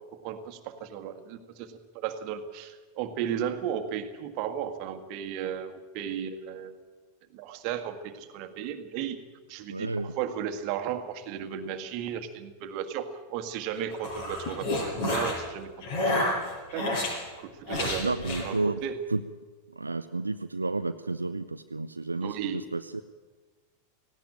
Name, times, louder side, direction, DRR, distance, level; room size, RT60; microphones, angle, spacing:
voice 1, 0.2-6.8 7.3-9.2 9.5-14.8 15.1-15.7 16.0-16.2 16.7-16.9 17.4-18.1 18.4-19.0 22.2-22.7, right 9 dB, 45° right, 8 dB, 1.7 m, -35 dB
voice 2, 9.7-10.1 18.0-18.8 19.1-19.2 19.8-23.0, right 3 dB, 80° right, 9 dB, 0.5 m, -31 dB
sound 1, 13.8-15.4 15.8-17.1 17.7-18.5, left 1 dB, 50° left, 7.1 m, -29 dB
18.0 x 16.5 x 8.8 m, 1.4 s
figure-of-eight pair, 90°, 0 cm